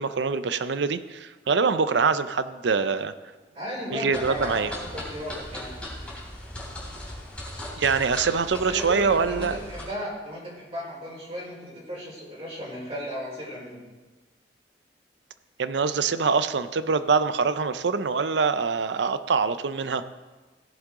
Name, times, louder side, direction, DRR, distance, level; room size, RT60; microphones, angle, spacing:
voice 1, 0.0-3.1 3.9-4.7 7.8-9.6 15.6-20.0, right 5 dB, 75° right, 12 dB, 0.5 m, -24 dB
voice 2, 3.5-5.8 8.5-13.8, equal, 35° right, -6 dB, 4.2 m, -35 dB
sound 1, 4.1-9.8, left 1 dB, 5° left, 3.2 m, -38 dB
16.5 x 7.6 x 3.7 m, 1.3 s
head